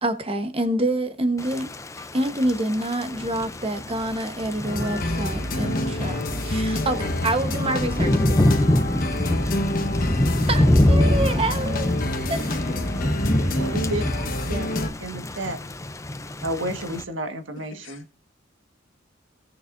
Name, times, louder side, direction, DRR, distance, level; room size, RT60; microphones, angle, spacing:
voice 1, 0.0-1.7 2.0-8.1 10.4-11.9 12.3-12.6, right 1 dB, 30° right, 1.2 m, -27 dB
Thunder / Rain, 1.4-17.0, left 1 dB, 15° left, 0.6 m, -25 dB
sound 1, 4.7-14.9, left 1 dB, 50° left, 1.3 m, -28 dB
voice 2, 12.4-13.0 17.7-18.2, left 3 dB, 90° left, 2.0 m, -42 dB
voice 3, 13.6-14.7 15.0-15.6 16.4-18.0, right 1 dB, 80° right, 1.7 m, -31 dB
17.5 x 6.7 x 2.6 m
head